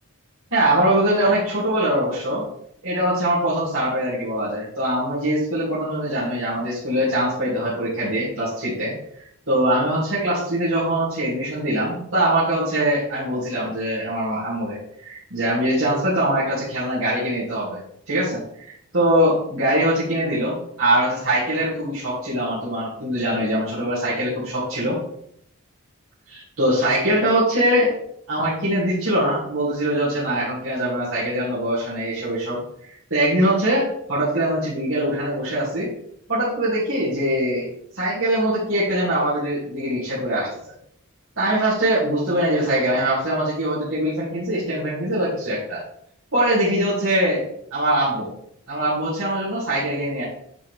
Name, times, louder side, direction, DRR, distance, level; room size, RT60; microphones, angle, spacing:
voice 1, 0.5-2.4 2.8-17.8 18.1-25.0 26.3-27.9 28.3-32.6 32.9-35.9 36.3-40.5 41.4-45.8 46.3-47.4 47.7-48.3 48.7-50.2, right 1 dB, 70° right, -11 dB, 2.7 m, -22 dB
9.6 x 4.0 x 3.5 m, 0.71 s
head